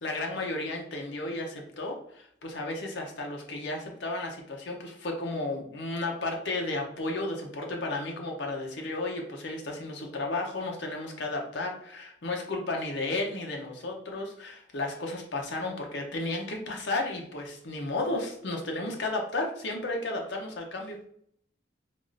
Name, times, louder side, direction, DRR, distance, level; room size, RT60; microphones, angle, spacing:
voice 1, 0.0-21.0, left 2 dB, 65° left, 1 dB, 0.6 m, -33 dB
3.4 x 2.4 x 2.5 m, 0.66 s
head